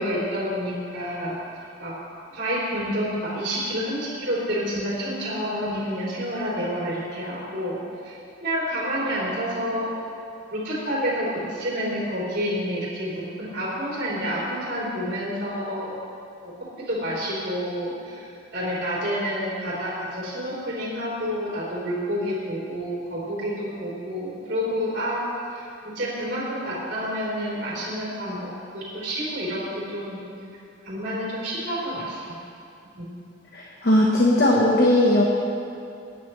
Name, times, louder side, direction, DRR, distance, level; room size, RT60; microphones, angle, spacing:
voice 1, 0.0-1.4 1.8-1.9 2.3-7.8 8.0-9.9 10.5-16.0 16.9-25.2 25.5-25.7 25.9-30.2 30.8-32.4 33.0-33.1, equal, 55° right, -8 dB, 3.9 m, -29 dB
voice 2, 33.5-35.2, left 1 dB, 55° left, -3 dB, 1.3 m, -18 dB
24.0 x 10.0 x 3.3 m, 2.6 s
head